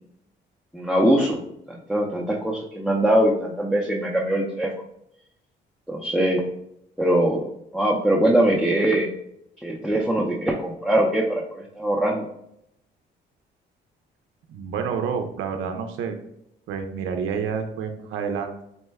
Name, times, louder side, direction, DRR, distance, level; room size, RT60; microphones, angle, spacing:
voice 1, 0.7-1.4 1.7-4.7 5.9-6.4 7.0-7.5 7.7-9.1 9.6-12.3, right 1 dB, ahead, -3 dB, 0.6 m, -22 dB
voice 2, 14.5-16.2 16.7-18.6, right 6 dB, 85° right, 5 dB, 0.5 m, -29 dB
4.3 x 2.1 x 3.4 m, 0.76 s
cardioid pair, 80°, 20 cm